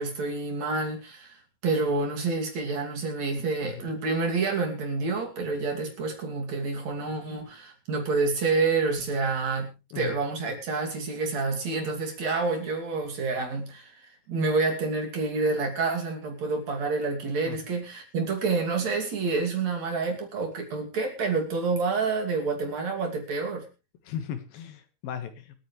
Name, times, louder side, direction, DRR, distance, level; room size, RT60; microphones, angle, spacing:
voice 1, 0.0-1.4 1.6-23.7, right 4 dB, 50° right, 2 dB, 3.8 m, -28 dB
voice 2, 24.1-25.6, left 9 dB, 75° left, 9 dB, 3.3 m, -36 dB
26.5 x 9.3 x 3.3 m, 0.29 s
omnidirectional pair, 4.2 m